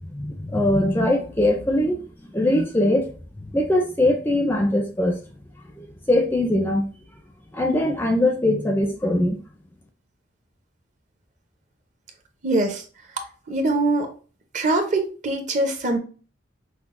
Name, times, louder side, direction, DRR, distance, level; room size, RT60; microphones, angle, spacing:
voice 1, 0.1-3.1 3.5-5.2 5.8-6.9 7.5-9.4, left 1 dB, 10° left, 0.4 m, -21 dB
voice 2, 12.4-12.8 13.5-14.1 14.5-16.0, right 2 dB, 40° right, 0.6 m, -22 dB
5.8 x 2.1 x 2.5 m
head